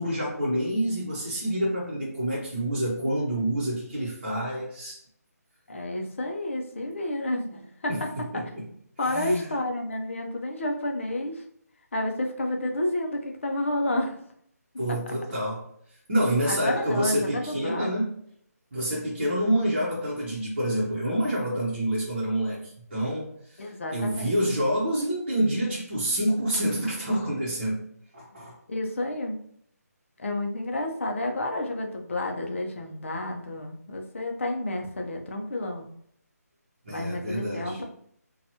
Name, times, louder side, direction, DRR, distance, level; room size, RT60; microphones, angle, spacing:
voice 1, 0.0-5.0 7.9-8.7 9.0-9.5 14.8-15.6 16.1-18.1 18.7-23.6 23.9-27.8 28.1-28.6 36.9-37.8, right 1 dB, 35° right, -6 dB, 0.9 m, -27 dB
voice 2, 5.7-8.4 9.0-11.4 11.9-14.2 14.9-15.1 16.5-17.9 23.6-24.4 28.7-29.4 30.2-35.9 36.9-37.8, left 1 dB, 50° left, 2 dB, 0.6 m, -30 dB
2.8 x 2.3 x 2.7 m, 0.67 s
hypercardioid pair, 175°, 9 cm